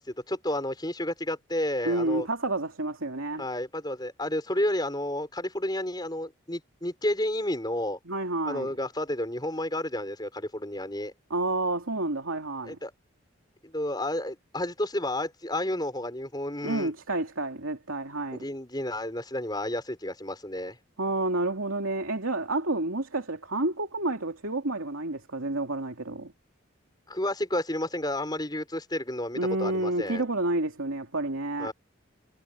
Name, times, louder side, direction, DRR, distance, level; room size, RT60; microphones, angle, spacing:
voice 1, 0.0-2.3 3.4-8.0 8.5-11.1 12.6-12.9 13.6-16.9 18.3-20.8 27.1-30.2 31.6-31.7, left 1 dB, 20° left, 5.2 m, -31 dB
voice 2, 1.8-3.5 8.1-8.7 11.3-12.8 16.6-18.4 21.0-26.3 29.3-31.7, right 2 dB, 75° right, 2.7 m, -29 dB
head